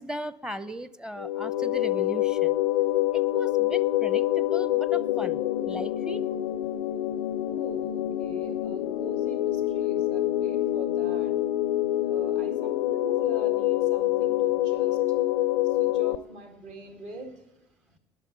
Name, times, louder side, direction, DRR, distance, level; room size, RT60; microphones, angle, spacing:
voice 1, 0.0-2.6 3.1-6.2, right 1 dB, 5° right, 16 dB, 0.7 m, -38 dB
sound 1, 1.2-16.2, left 14 dB, 75° left, 0.4 m, -26 dB
voice 2, 7.5-11.4 12.0-15.0 15.6-18.0, right 3 dB, 55° right, 3 dB, 2.1 m, -43 dB
20.0 x 7.2 x 4.5 m, 0.88 s
figure-of-eight pair, 55°, 14 cm